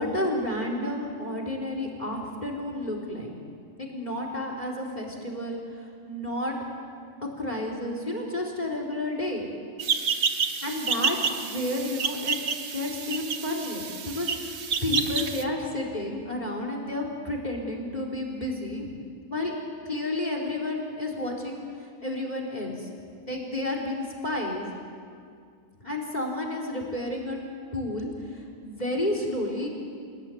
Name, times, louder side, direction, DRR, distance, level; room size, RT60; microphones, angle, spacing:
voice 1, 0.0-3.3 3.8-6.5 7.4-9.5 10.6-12.4 12.7-18.9 19.3-19.5 19.8-21.6 22.0-22.9 23.3-24.7 25.8-27.4 27.7-29.7, left 1 dB, 30° left, 1 dB, 4.4 m, -31 dB
sound 1, 9.8-15.4, right 6 dB, 90° right, 1.7 m, -29 dB
30.0 x 17.5 x 9.5 m, 2.3 s
omnidirectional pair, 1.4 m